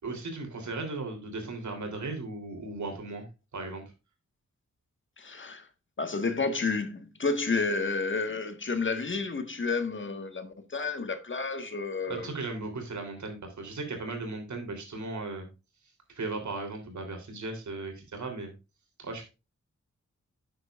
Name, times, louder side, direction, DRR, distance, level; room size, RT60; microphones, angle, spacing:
voice 1, 0.0-3.3 3.5-3.8 12.1-15.5 16.1-18.5 19.0-19.3, right 3 dB, 80° right, 3.4 m, -36 dB
voice 2, 5.2-5.7 6.0-12.3, left 4 dB, 40° left, 1.6 m, -31 dB
10.0 x 8.0 x 2.5 m
cardioid pair, 70°, 29 cm